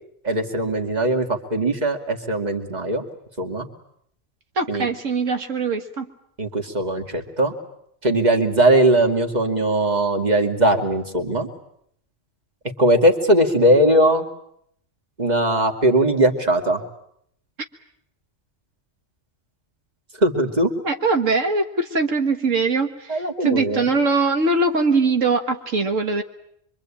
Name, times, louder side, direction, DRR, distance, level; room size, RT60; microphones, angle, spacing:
voice 1, 0.2-3.0 3.4-3.7 4.7-4.9 6.4-7.5 8.0-11.5 12.8-14.3 15.2-16.8 20.2-20.7 23.1-23.8, right 1 dB, 35° right, 4 dB, 2.6 m, -19 dB
voice 2, 4.6-6.1 20.8-26.2, right 3 dB, 80° right, 5 dB, 1.9 m, -21 dB
25.5 x 24.5 x 8.8 m, 0.71 s
omnidirectional pair, 1.3 m